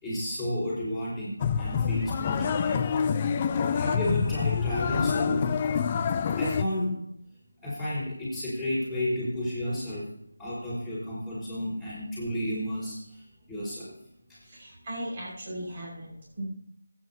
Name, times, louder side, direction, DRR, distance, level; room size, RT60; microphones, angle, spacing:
voice 1, 0.0-2.8 3.7-5.6 6.4-7.0 7.6-10.1 10.4-13.2 13.5-14.0 14.3-14.4, left 1 dB, ahead, -13 dB, 5.2 m, -32 dB
sound 1, 1.4-6.7, left 6 dB, 25° left, 0.5 m, -27 dB
voice 2, 14.4-16.4, right 1 dB, 30° right, -4 dB, 6.0 m, -38 dB
19.0 x 9.7 x 2.9 m, 0.68 s
figure-of-eight pair, 160°, 0 cm